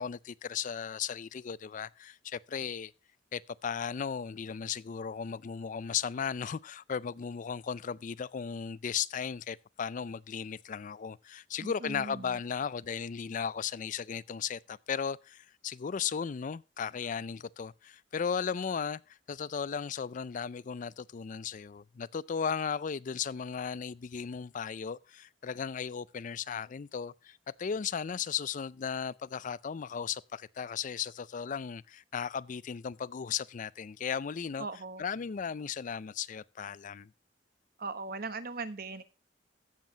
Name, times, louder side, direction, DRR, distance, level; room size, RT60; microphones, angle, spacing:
voice 1, 0.0-2.9 3.3-34.7 35.0-37.1, left 7 dB, 45° left, 0.4 m, -36 dB
voice 2, 11.6-12.4 34.6-35.0 37.8-39.0, right 3 dB, 55° right, 1.1 m, -39 dB
14.5 x 7.6 x 2.8 m
head